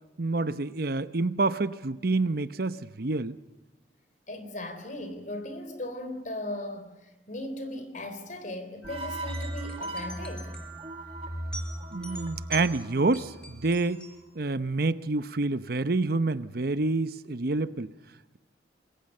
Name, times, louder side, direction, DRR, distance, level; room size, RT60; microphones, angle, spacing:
voice 1, 0.2-3.4 11.9-14.0 14.3-17.9, right 3 dB, 55° right, 0.8 m, -28 dB
voice 2, 4.3-10.5, left 1 dB, 45° left, 3.8 m, -38 dB
sound 1, 8.8-14.2, right 1 dB, 5° left, 4.5 m, -45 dB
sound 2, 8.8-14.1, right 1 dB, 35° right, 2.1 m, -38 dB
27.0 x 22.0 x 6.7 m
head